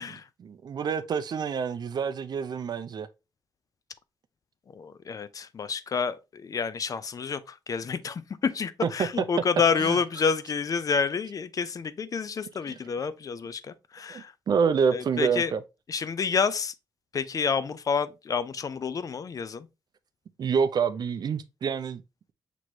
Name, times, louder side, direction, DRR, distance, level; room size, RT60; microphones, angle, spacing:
voice 1, 0.0-3.1 9.8-10.0 12.7-12.8 14.1-15.6 20.4-22.0, right 6 dB, 55° right, 0.5 m, -27 dB
voice 2, 4.7-14.3 14.9-15.5 15.9-16.7 17.1-19.7, left 5 dB, 45° left, 0.4 m, -29 dB
6.0 x 3.0 x 2.6 m
cardioid pair, 90°, 8 cm